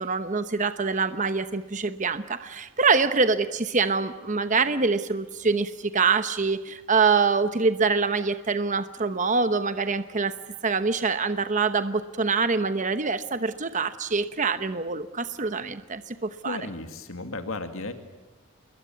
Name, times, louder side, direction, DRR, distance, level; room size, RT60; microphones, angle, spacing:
voice 1, 0.0-10.4 10.6-16.6, right 4 dB, 35° right, 11 dB, 1.0 m, -25 dB
voice 2, 16.4-17.9, left 2 dB, 75° left, 7 dB, 2.3 m, -34 dB
27.5 x 21.5 x 9.4 m, 1.2 s
head